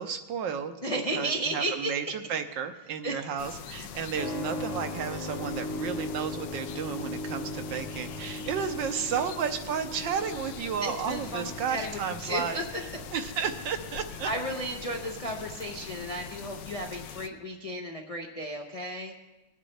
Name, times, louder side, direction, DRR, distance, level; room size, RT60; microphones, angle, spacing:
voice 1, 0.0-12.6 13.1-14.3, right 7 dB, 70° right, 8 dB, 1.4 m, -33 dB
voice 2, 0.8-1.9 3.0-3.2 10.8-12.8 14.2-19.1, right 1 dB, 55° left, 0 dB, 0.3 m, -33 dB
sound 1, 3.4-17.3, left 8 dB, 70° left, 1.2 m, -43 dB
Keyboard (musical), 4.1-16.5, left 1 dB, 40° left, 1.2 m, -40 dB
20.0 x 9.0 x 3.3 m, 1.1 s
omnidirectional pair, 2.2 m